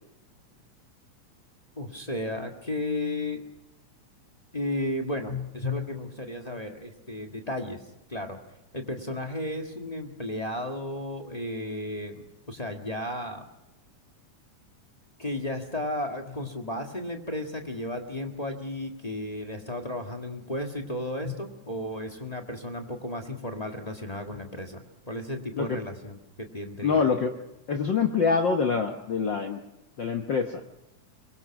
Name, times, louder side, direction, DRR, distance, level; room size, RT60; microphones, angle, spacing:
voice 1, 1.8-3.4 4.5-7.8 8.1-8.4 8.7-13.5 15.2-27.0, left 1 dB, 25° left, 4 dB, 0.9 m, -34 dB
voice 2, 26.8-27.3 27.7-29.6 30.0-30.6, left 5 dB, 65° left, 5 dB, 1.1 m, -25 dB
23.5 x 22.0 x 5.9 m, 0.94 s
omnidirectional pair, 3.7 m